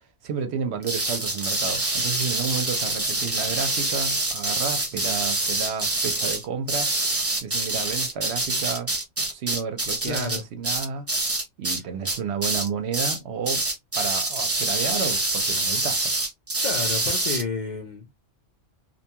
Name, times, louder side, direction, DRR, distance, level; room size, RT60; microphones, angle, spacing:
voice 1, 0.2-6.9 7.4-8.9 9.2-11.1 11.6-13.6 13.9-16.0, right 6 dB, 65° right, 0.8 m, -31 dB
sound 1, 0.8-11.8 12.1-12.7 12.9-13.2 13.5-17.4, right 2 dB, 20° right, 0.4 m, -26 dB
voice 2, 10.1-10.4 16.6-18.3, left 4 dB, 50° left, 0.5 m, -31 dB
2.6 x 2.2 x 2.8 m
omnidirectional pair, 1.3 m